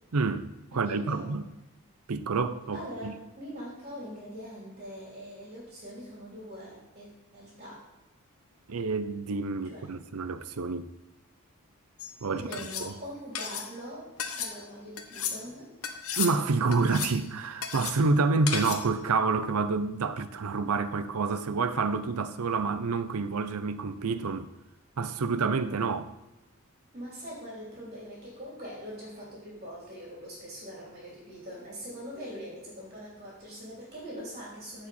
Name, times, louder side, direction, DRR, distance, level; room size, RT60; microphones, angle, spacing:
voice 1, 0.1-1.5 2.1-3.1 8.7-10.9 12.2-12.4 12.8-12.9 16.2-24.5 25.0-26.1, right 4 dB, 80° right, 0.6 m, -28 dB
voice 2, 0.7-1.3 2.7-7.9 9.7-9.9 12.3-14.1 14.4-15.7 26.9-34.9, equal, 35° right, 3.2 m, -42 dB
sound 1, 12.0-12.1 12.5-12.9 13.3-13.7 14.2-14.5 15.0-15.4 15.8-16.3 16.7-17.2 17.6-18.0 18.5-18.9, left 7 dB, 75° left, 1.0 m, -34 dB
15.0 x 5.0 x 4.3 m
head